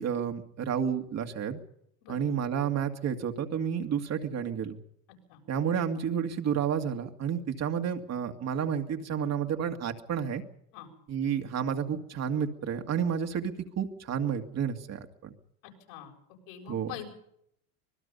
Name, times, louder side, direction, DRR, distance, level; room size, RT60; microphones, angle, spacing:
voice 1, 0.0-1.6 2.1-4.8 5.5-10.4 11.1-15.3 16.7-16.9, right 8 dB, 35° right, 5 dB, 2.2 m, -31 dB
voice 2, 15.6-16.1 16.5-17.1, left 10 dB, 70° left, 3 dB, 7.7 m, -43 dB
25.5 x 20.5 x 5.5 m, 0.72 s
supercardioid pair, 130°, 45 cm